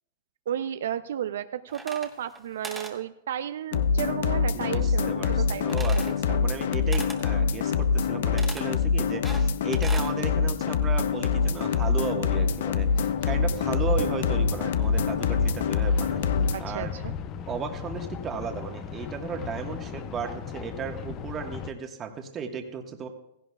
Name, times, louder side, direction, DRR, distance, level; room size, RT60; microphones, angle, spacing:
voice 1, 0.5-6.5 16.5-17.1, right 10 dB, 75° right, 11 dB, 0.4 m, -33 dB
sound 1, 1.7-2.4 2.6-3.0 5.7-6.2 6.9-7.2 8.4-8.7 9.2-10.1, right 2 dB, 5° right, 1.1 m, -39 dB
sound 2, 3.7-16.6, left 5 dB, 70° left, 0.6 m, -25 dB
voice 2, 4.5-6.0 6.3-16.3 16.6-16.9 17.5-23.1, right 6 dB, 25° right, 4 dB, 1.4 m, -35 dB
sound 3, 10.3-21.7, left 8 dB, 35° left, 0.7 m, -38 dB
16.0 x 15.5 x 2.3 m, 0.82 s
hypercardioid pair, 140°, 0 cm